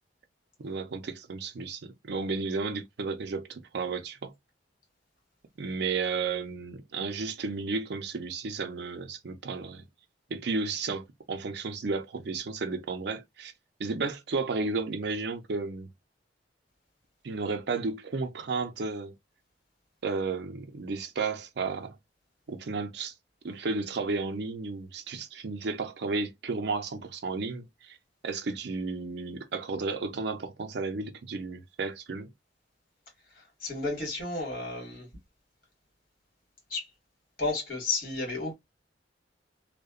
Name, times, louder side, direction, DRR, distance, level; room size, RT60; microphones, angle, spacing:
voice 1, 0.6-4.3 5.6-9.9 10.3-13.5 13.8-15.9 17.2-19.1 20.0-22.0 22.5-23.1 23.4-28.0 28.2-32.3, right 4 dB, 65° right, 0.5 m, -33 dB
voice 2, 33.3-35.1 36.7-36.9 37.4-38.5, left 3 dB, 50° left, 1.7 m, -32 dB
2.7 x 2.1 x 2.3 m
head